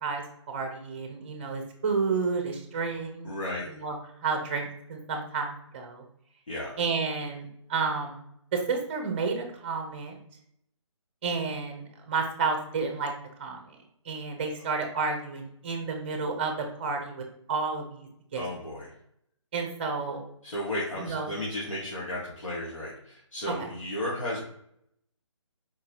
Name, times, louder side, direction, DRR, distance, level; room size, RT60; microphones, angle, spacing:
voice 1, 0.0-3.3 3.7-4.0 4.2-6.0 6.8-8.2 8.5-10.2 11.2-13.1 13.4-13.8 14.0-18.4 19.5-20.2 21.0-21.3, right 4 dB, 20° right, 4 dB, 0.7 m, -31 dB
voice 2, 3.2-3.7 6.5-6.7 18.3-18.9 20.4-24.4, left 1 dB, 80° left, -6 dB, 1.8 m, -34 dB
4.7 x 3.7 x 2.9 m, 0.72 s
hypercardioid pair, 165°, 16 cm